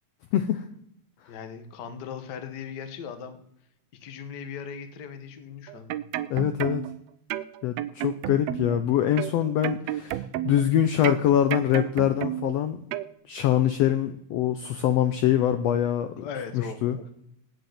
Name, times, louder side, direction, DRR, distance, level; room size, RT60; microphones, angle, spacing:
voice 1, 0.3-0.6 6.3-6.8 7.6-12.8 13.3-16.3 16.5-17.0, left 11 dB, 75° left, 9 dB, 1.6 m, -24 dB
voice 2, 1.3-3.4 4.0-6.0 9.8-9.9 16.2-17.1, left 7 dB, 50° left, 9 dB, 1.3 m, -38 dB
sound 1, 5.7-7.0 7.3-8.8 9.2-10.7 11.0-12.6 12.9-13.1, right 13 dB, 80° right, 1.5 m, -31 dB
9.3 x 8.7 x 8.1 m, 0.76 s
omnidirectional pair, 3.5 m